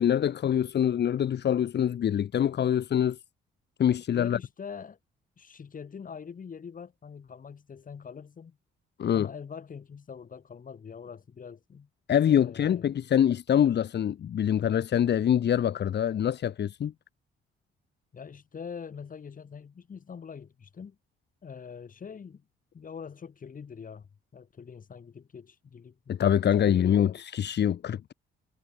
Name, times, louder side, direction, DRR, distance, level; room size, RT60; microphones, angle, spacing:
voice 1, 0.0-3.2 3.8-4.4 9.0-9.3 12.1-16.9 26.1-28.1, left 9 dB, 60° left, 2.0 m, -25 dB
voice 2, 4.1-5.0 5.4-8.6 9.1-11.9 12.2-13.0 18.1-21.0 21.4-22.4 22.7-26.2 26.6-27.0, left 6 dB, 45° left, 4.1 m, -44 dB
cardioid pair, 90°, 20 cm